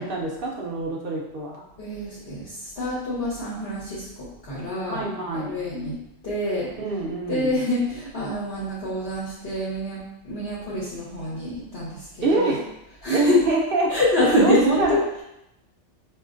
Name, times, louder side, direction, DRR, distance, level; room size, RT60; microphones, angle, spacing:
voice 1, 0.0-1.6 4.8-5.6 6.8-7.5 12.2-12.7 13.1-14.0 14.4-15.0, right 2 dB, 60° right, -1 dB, 0.7 m, -25 dB
voice 2, 1.8-5.0 5.3-6.0 6.2-6.7 7.3-12.5 13.0-13.4 13.9-15.2, left 1 dB, 55° left, -7 dB, 1.0 m, -26 dB
5.0 x 2.5 x 2.4 m, 0.85 s
omnidirectional pair, 1.2 m